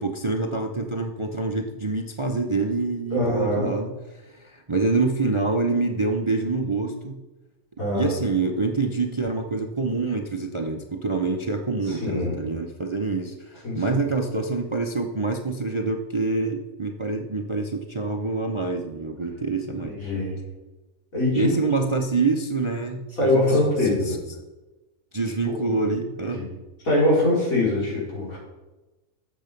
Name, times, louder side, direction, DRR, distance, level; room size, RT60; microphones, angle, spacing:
voice 1, 0.0-3.9 4.3-7.2 7.8-19.9 21.4-23.6 24.0-24.2 25.1-26.4, right 3 dB, 30° right, 4 dB, 0.6 m, -26 dB
voice 2, 3.1-3.7 7.8-8.1 11.9-12.4 13.6-13.8 19.7-20.4 21.1-21.5 23.2-24.2 25.5-25.9 26.3-26.4 26.8-28.4, left 1 dB, 75° left, -5 dB, 4.6 m, -23 dB
12.5 x 7.6 x 5.2 m, 1.1 s
omnidirectional pair, 1.5 m